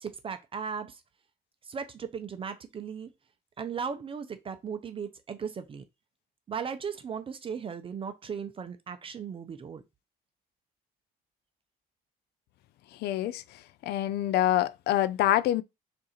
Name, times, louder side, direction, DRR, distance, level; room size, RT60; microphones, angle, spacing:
voice 1, 0.0-1.0 1.6-3.1 3.6-5.8 6.5-9.8, right 6 dB, 30° right, 0.5 m, -37 dB
voice 2, 13.0-13.4 13.8-15.6, left 13 dB, 75° left, 0.4 m, -26 dB
3.6 x 2.5 x 4.2 m
cardioid pair, 110°, 17 cm